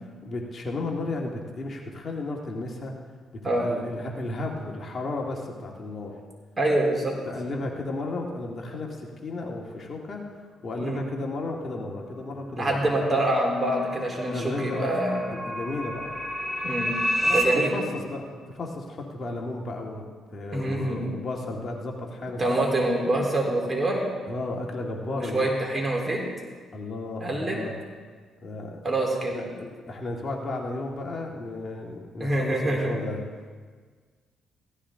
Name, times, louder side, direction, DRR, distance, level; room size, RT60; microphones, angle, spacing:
voice 1, 0.2-2.9 3.3-6.2 7.3-10.2 10.6-13.2 14.1-14.9 15.3-16.1 17.2-20.0 20.3-22.6 24.3-25.5 26.7-27.7 28.4-28.8 29.3-33.2, left 2 dB, 45° left, 0 dB, 1.9 m, -34 dB
voice 2, 6.6-7.1 10.8-11.0 12.6-15.3 16.6-16.9 17.3-17.7 20.5-21.1 22.4-24.0 25.1-26.2 27.2-27.6 28.8-29.4 32.2-32.9, right 1 dB, 25° right, -2 dB, 3.6 m, -25 dB
sound 1, 13.4-17.4, equal, 5° right, 3.1 m, -30 dB
16.5 x 13.0 x 3.8 m, 1.6 s
cardioid pair, 90°, 0 cm